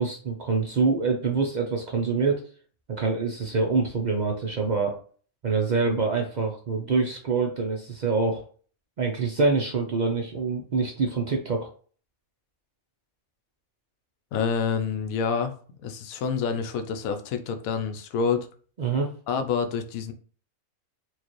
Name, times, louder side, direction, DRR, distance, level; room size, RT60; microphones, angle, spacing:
voice 1, 0.0-2.4 2.9-5.0 5.4-8.4 9.0-11.7 18.8-19.1, right 4 dB, 70° right, 1 dB, 0.4 m, -25 dB
voice 2, 14.3-18.5 19.3-20.1, left 6 dB, 80° left, 7 dB, 1.0 m, -28 dB
4.5 x 2.4 x 2.9 m, 0.42 s
omnidirectional pair, 1.4 m